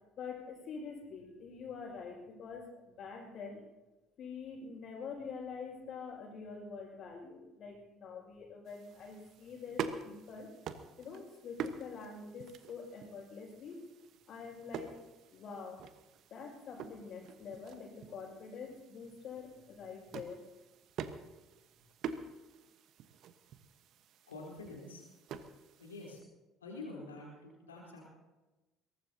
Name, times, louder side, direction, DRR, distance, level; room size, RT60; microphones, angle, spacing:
voice 1, 0.2-2.7 3.0-3.6 4.2-10.5 11.0-13.8 14.3-15.0 15.3-15.8 16.3-20.4, left 5 dB, 50° left, 0 dB, 6.0 m, -46 dB
sound 1, 8.7-26.2, right 7 dB, 55° right, 1.2 m, -47 dB
voice 2, 24.3-25.0 25.8-26.2 26.6-28.0, left 2 dB, 85° left, -3 dB, 3.9 m, -47 dB
22.5 x 19.0 x 2.9 m, 1.1 s
figure-of-eight pair, 55°, 0 cm